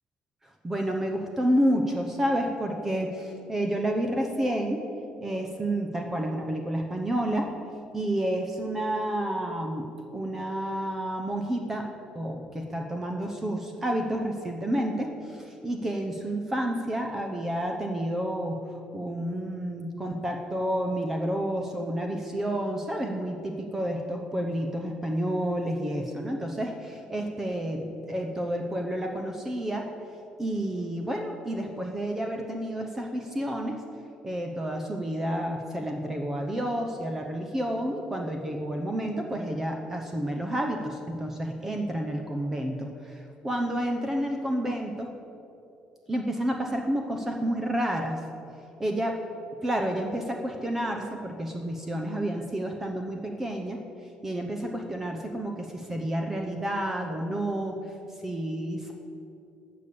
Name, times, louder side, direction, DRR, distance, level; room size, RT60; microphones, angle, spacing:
voice 1, 0.6-4.8 5.2-7.5 7.9-9.9 10.1-11.8 12.1-18.6 18.9-29.8 30.4-33.8 34.2-45.1 46.1-48.2 48.8-49.2 49.6-53.8 54.2-57.7 58.2-58.9, right 1 dB, 15° right, 3 dB, 0.7 m, -30 dB
12.5 x 6.7 x 8.5 m, 2.7 s
cardioid pair, 175°, 3 cm